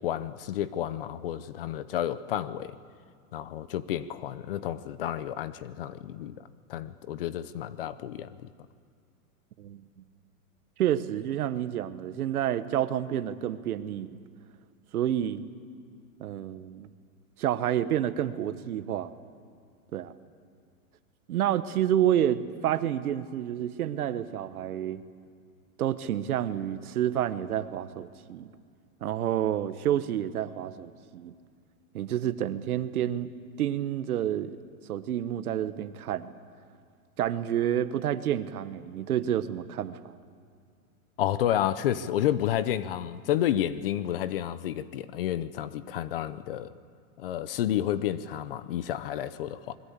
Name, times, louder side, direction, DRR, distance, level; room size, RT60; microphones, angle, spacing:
voice 1, 0.0-2.8 3.3-6.3 6.7-8.5 41.2-46.7 47.2-49.8, left 11 dB, 40° left, 15 dB, 0.8 m, -30 dB
voice 2, 10.8-14.2 14.9-15.5 16.2-16.9 17.4-19.1 19.9-20.1 21.3-25.0 25.8-28.5 29.0-31.3 31.9-33.3 33.6-34.6 34.9-36.3 37.2-40.1, right 11 dB, 70° right, 12 dB, 1.4 m, -29 dB
28.0 x 21.5 x 8.4 m, 2.2 s
supercardioid pair, 170°, 45 cm